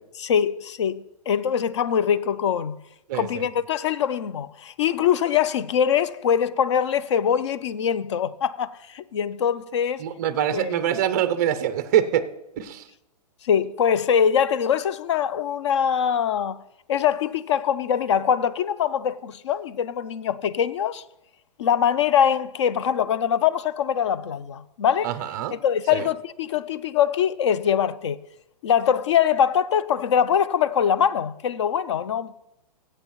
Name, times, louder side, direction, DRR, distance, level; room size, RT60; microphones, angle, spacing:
voice 1, 0.1-2.8 3.1-10.0 10.5-10.8 13.4-16.6 16.9-21.0 21.6-25.1 25.6-28.2 28.6-32.4, left 8 dB, 45° left, 0.4 m, -23 dB
voice 2, 3.1-3.5 10.0-12.2 12.6-12.9 25.0-25.5 25.9-26.0, right 10 dB, 25° right, 0.4 m, -24 dB
15.0 x 7.9 x 3.0 m
hypercardioid pair, 165°, 21 cm